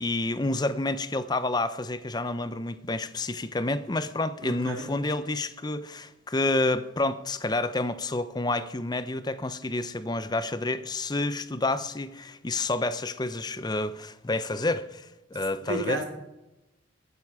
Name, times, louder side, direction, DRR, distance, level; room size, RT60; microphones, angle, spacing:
voice 1, 0.0-16.0, left 2 dB, 20° left, 0.5 m, -29 dB
voice 2, 4.4-4.9 15.6-16.0, right 2 dB, 70° right, 2.2 m, -32 dB
21.0 x 9.6 x 4.8 m
head